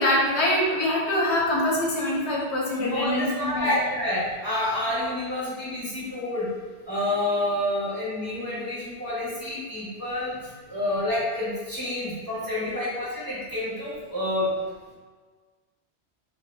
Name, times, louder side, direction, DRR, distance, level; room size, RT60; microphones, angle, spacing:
voice 1, 0.0-3.8, left 1 dB, 85° left, -3 dB, 1.0 m, -24 dB
voice 2, 2.8-6.5 6.9-10.4 10.7-14.5, left 1 dB, 20° right, -9 dB, 0.8 m, -28 dB
2.9 x 2.2 x 3.3 m, 1.4 s
omnidirectional pair, 1.1 m